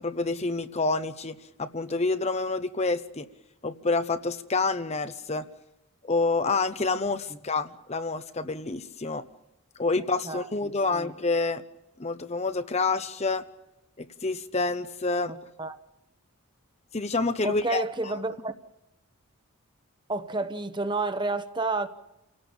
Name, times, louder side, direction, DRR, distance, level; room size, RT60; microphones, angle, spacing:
voice 1, 0.0-3.3 3.6-5.4 6.0-9.2 9.8-11.6 12.0-13.4 14.0-15.3 16.9-18.1, left 3 dB, 30° left, 0.9 m, -28 dB
voice 2, 10.2-11.1 15.3-15.8 17.4-18.5 20.1-21.9, right 2 dB, 20° right, 1.1 m, -31 dB
29.0 x 17.5 x 7.1 m
head